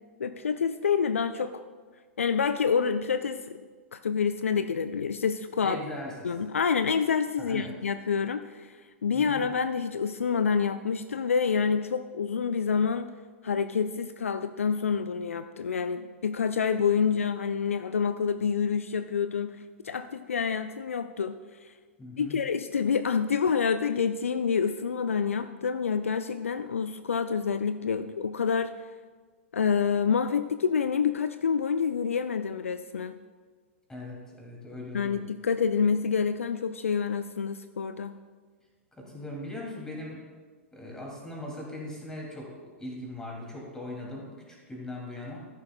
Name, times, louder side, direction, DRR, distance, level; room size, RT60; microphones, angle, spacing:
voice 1, 0.2-1.6 2.2-3.6 3.9-5.8 6.2-13.1 13.4-21.7 22.2-28.7 29.5-33.2 34.9-38.1, left 6 dB, 75° left, 10 dB, 0.4 m, -27 dB
voice 2, 5.6-6.1 7.4-7.7 9.1-9.4 22.0-22.4 33.9-35.2 38.9-40.2 40.7-45.4, left 1 dB, 10° left, -2 dB, 2.6 m, -39 dB
14.0 x 10.5 x 2.3 m, 1.5 s
figure-of-eight pair, 100°, 7 cm